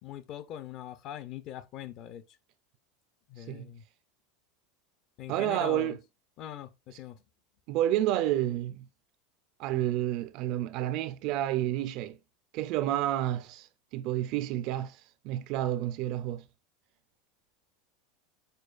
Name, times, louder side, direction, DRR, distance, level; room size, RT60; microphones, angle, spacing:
voice 1, 0.0-2.2 3.3-3.8 5.2-6.0 6.4-7.2, left 11 dB, 40° left, 0.5 m, -42 dB
voice 2, 5.3-6.0 7.7-8.9 9.6-12.2 12.5-13.7 13.9-16.4, right 13 dB, 45° right, 0.3 m, -30 dB
6.5 x 2.2 x 2.4 m
supercardioid pair, 160°, 0 cm